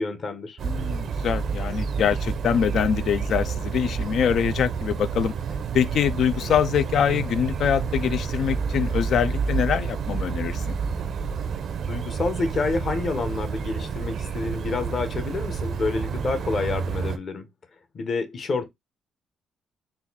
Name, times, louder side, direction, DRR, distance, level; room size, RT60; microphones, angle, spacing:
voice 1, 0.0-0.6 11.9-17.5 17.9-18.7, left 3 dB, 50° left, 1.0 m, -28 dB
voice 2, 0.6-5.3 5.7-10.8, left 8 dB, 70° left, 0.4 m, -24 dB
sound 1, 0.6-17.2, right 6 dB, 65° right, 0.6 m, -29 dB
4.0 x 2.4 x 4.1 m
cardioid pair, 90°, 0 cm